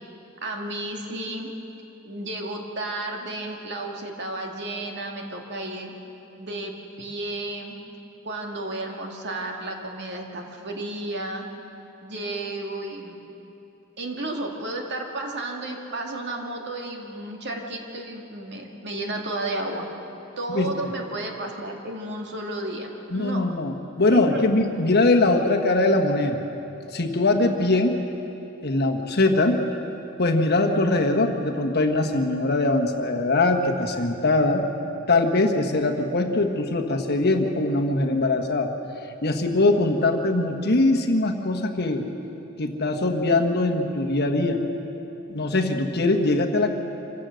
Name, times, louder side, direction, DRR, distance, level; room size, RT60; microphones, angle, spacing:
voice 1, 0.4-1.5 2.0-5.9 6.4-6.7 7.0-7.8 8.2-11.4 12.0-13.2 14.0-19.9 20.4-23.5 24.1-24.5, right 2 dB, 55° right, 1 dB, 2.2 m, -32 dB
voice 2, 23.1-26.4 26.9-28.0 28.6-29.6 30.2-34.6 35.1-38.7 39.2-42.0 42.6-44.6 45.3-46.7, left 2 dB, 50° left, 3 dB, 1.4 m, -22 dB
26.0 x 16.0 x 6.5 m, 3.0 s
head